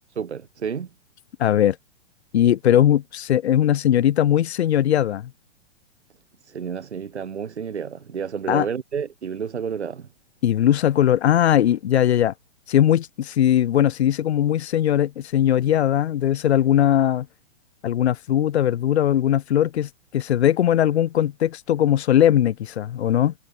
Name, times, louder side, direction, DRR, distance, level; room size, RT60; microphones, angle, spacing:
voice 1, 0.2-0.9 6.4-10.1, right 7 dB, 85° right, 1.3 m, -30 dB
voice 2, 1.4-1.8 2.3-5.3 8.5-8.7 10.4-12.3 12.7-17.3 17.8-23.3, left 11 dB, 75° left, 0.7 m, -19 dB
hypercardioid pair, 120°, 33 cm